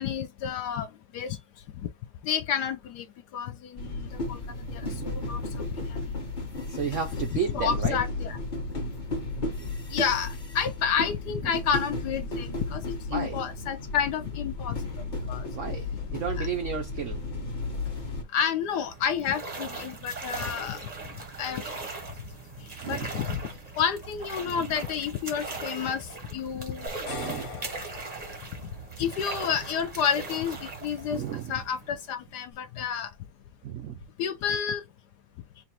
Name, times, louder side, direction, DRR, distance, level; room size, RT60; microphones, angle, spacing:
voice 1, 0.0-1.4 2.2-3.1 3.3-4.4 4.7-5.4 5.7-6.0 7.3-8.4 9.9-14.8 15.3-15.5 16.4-16.5 18.3-20.8 21.4-21.6 22.9-23.4 23.7-26.9 29.0-31.2 31.5-33.1 34.2-34.8, left 7 dB, 75° left, 1.0 m, -30 dB
sound 1, 3.8-18.2, left 3 dB, 35° left, 0.9 m, -34 dB
voice 2, 4.8-5.3 6.7-8.0 13.1-13.4 15.5-17.2 22.8-23.1 24.5-24.7 27.1-27.5 31.1-31.5 33.6-34.0, right 7 dB, 75° right, 0.7 m, -33 dB
sound 2, 18.5-32.2, right 3 dB, 35° right, 0.6 m, -39 dB
sound 3, 26.9-29.2, left 4 dB, 50° left, 1.6 m, -42 dB
4.0 x 2.3 x 4.1 m
omnidirectional pair, 2.1 m